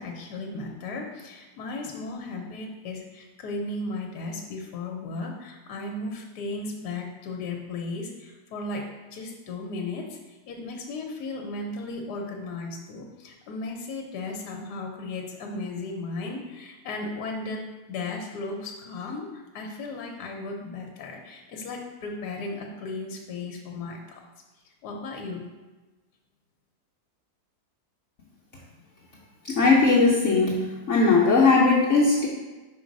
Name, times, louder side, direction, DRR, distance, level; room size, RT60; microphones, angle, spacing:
voice 1, 0.0-8.8 9.1-17.6 17.9-24.0 24.8-25.4, left 3 dB, 80° left, 1 dB, 1.3 m, -35 dB
voice 2, 29.4-30.6 30.9-32.3, left 4 dB, 55° left, -5 dB, 1.0 m, -19 dB
5.1 x 3.9 x 5.2 m, 1.2 s
omnidirectional pair, 1.7 m